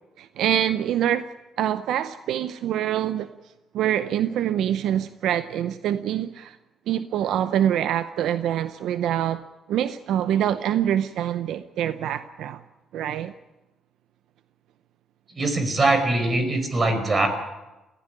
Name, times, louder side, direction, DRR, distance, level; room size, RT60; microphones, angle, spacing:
voice 1, 0.2-1.3 1.6-3.3 3.7-6.6 6.9-12.6 12.9-13.3, right 10 dB, 80° right, 12 dB, 0.7 m, -25 dB
voice 2, 15.3-17.3, right 2 dB, 35° right, 8 dB, 5.0 m, -22 dB
18.5 x 15.5 x 9.8 m, 1.0 s
cardioid pair, 90°, 0 cm